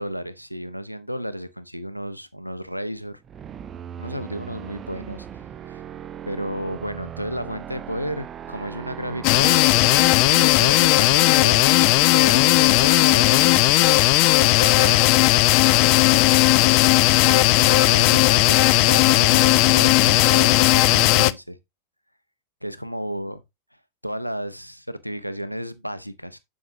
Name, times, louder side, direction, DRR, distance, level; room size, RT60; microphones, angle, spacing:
voice 1, 0.0-3.2 4.0-5.3 5.7-5.8 6.3-9.7 10.3-11.7 12.1-15.2 17.3-21.6 22.6-23.4 24.0-26.4, equal, 90° left, 0.7 m, -32 dB
sound 1, 3.0-10.7, right 9 dB, 25° right, 0.6 m, -38 dB
sound 2, 9.2-21.3, left 19 dB, 45° left, 0.3 m, -16 dB
7.4 x 7.1 x 2.7 m
figure-of-eight pair, 90°, 0 cm